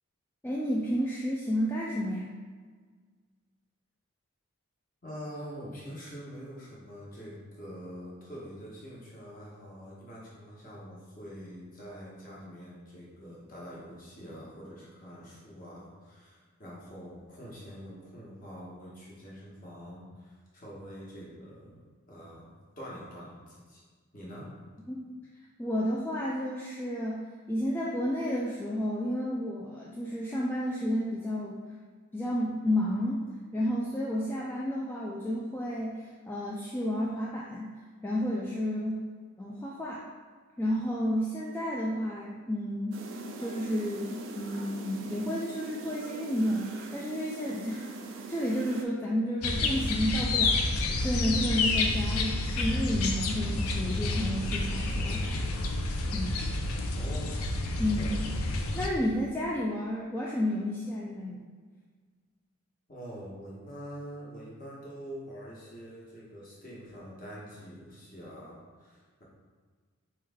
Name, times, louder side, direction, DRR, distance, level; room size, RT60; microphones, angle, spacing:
voice 1, 0.4-2.3 24.9-25.1 25.6-31.6 32.1-33.3 33.5-37.7 38.0-39.0 39.4-40.0 40.6-43.0 43.4-55.5 56.1-56.4 57.8-58.1 58.8-61.4, equal, 10° left, -5 dB, 0.3 m, -31 dB
voice 2, 5.0-23.8 24.1-24.5 57.0-57.4 58.0-58.5 62.9-69.2, equal, 40° left, -6 dB, 1.2 m, -45 dB
sound 1, 42.9-48.8, right 3 dB, 60° right, 0.4 m, -42 dB
sound 2, 49.4-58.9, left 2 dB, 80° left, 0.5 m, -29 dB
4.3 x 3.3 x 3.5 m, 1.5 s
head